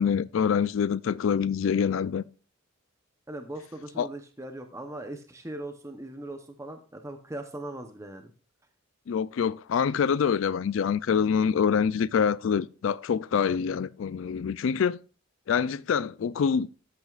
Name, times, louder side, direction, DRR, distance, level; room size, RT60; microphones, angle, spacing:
voice 1, 0.0-2.2 4.0-4.1 9.1-15.0 15.5-16.7, left 7 dB, 65° left, 0.3 m, -25 dB
voice 2, 3.3-8.3, right 1 dB, 15° right, 0.8 m, -39 dB
13.5 x 9.1 x 2.4 m
head